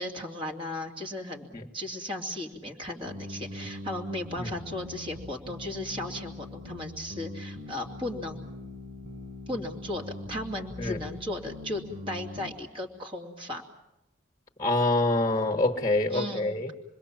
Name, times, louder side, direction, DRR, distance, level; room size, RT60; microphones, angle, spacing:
voice 1, 0.0-8.4 9.5-13.6 16.1-16.5, left 1 dB, 25° right, 2 dB, 2.8 m, -36 dB
sound 1, 3.0-12.5, left 1 dB, 85° right, 2.6 m, -42 dB
voice 2, 14.6-16.7, left 2 dB, 20° left, 2 dB, 1.5 m, -26 dB
28.0 x 21.5 x 7.4 m, 0.91 s
head